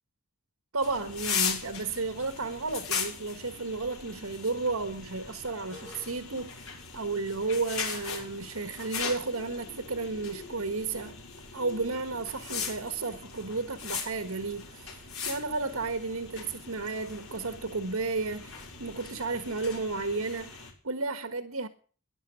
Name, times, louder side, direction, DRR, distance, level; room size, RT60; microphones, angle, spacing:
voice 1, 0.7-11.2 11.5-21.7, right 3 dB, 80° right, 1.5 m, -33 dB
sound 1, 0.8-20.7, left 6 dB, 75° left, 5.7 m, -39 dB
15.0 x 11.0 x 8.2 m
head